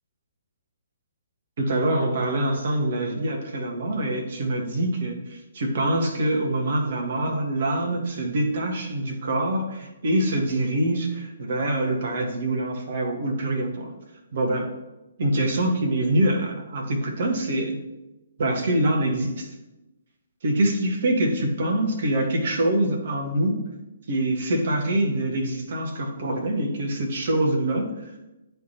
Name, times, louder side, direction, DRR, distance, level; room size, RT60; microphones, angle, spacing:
voice 1, 1.6-13.9 14.3-14.7 15.2-17.8 18.4-19.5 20.4-23.6 24.1-27.9, right 1 dB, 50° right, 1 dB, 1.4 m, -25 dB
10.0 x 3.5 x 2.8 m, 0.99 s
figure-of-eight pair, 130°, 0 cm